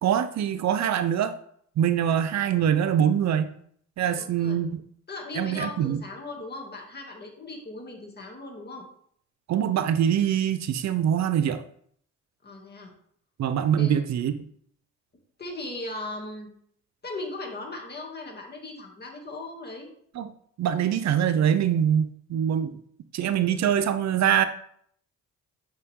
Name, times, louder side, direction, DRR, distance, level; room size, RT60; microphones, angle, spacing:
voice 1, 0.0-1.3 1.8-3.5 4.0-4.8 5.4-6.0 9.5-11.6 13.4-14.3 20.1-20.3 20.6-22.8 23.1-24.5, right 9 dB, 65° right, 10 dB, 0.7 m, -24 dB
voice 2, 4.1-4.6 5.1-8.8 12.4-12.9 13.8-13.9 15.4-16.5 17.0-19.9, left 2 dB, 35° left, 1 dB, 2.5 m, -38 dB
9.7 x 5.5 x 3.7 m, 0.64 s
cardioid pair, 90°, 30 cm